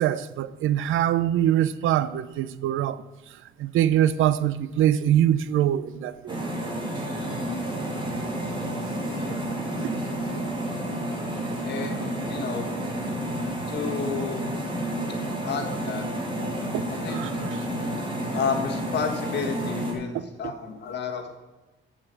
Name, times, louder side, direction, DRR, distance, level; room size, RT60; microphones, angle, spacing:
voice 1, 0.0-3.0 3.6-6.4 9.8-9.9 11.5-11.6 16.7-16.8 17.1-17.7 20.1-20.3, right 11 dB, 75° right, 0.5 m, -23 dB
sound 1, 6.3-19.9, right 1 dB, 20° right, 2.0 m, -30 dB
voice 2, 9.1-9.5 11.7-12.6 13.7-14.4 15.4-16.0 17.0-17.2 18.3-21.4, left 6 dB, 55° left, 1.5 m, -31 dB
7.4 x 7.0 x 8.2 m
cardioid pair, 175°, 21 cm